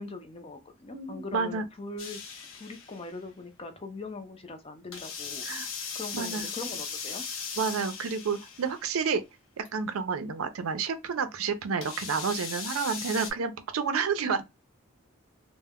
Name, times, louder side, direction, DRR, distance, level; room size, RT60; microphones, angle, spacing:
voice 1, 0.0-2.2 2.5-5.5 5.9-7.2, left 3 dB, 25° left, 0.4 m, -41 dB
voice 2, 0.9-1.6 5.5-5.7 6.1-6.5 7.6-9.2 9.6-14.5, right 5 dB, 85° right, 0.5 m, -30 dB
sound 1, 2.0-3.1 4.9-8.9 9.6-9.7 11.8-13.3, left 6 dB, 70° left, 0.6 m, -38 dB
2.1 x 2.1 x 3.5 m
head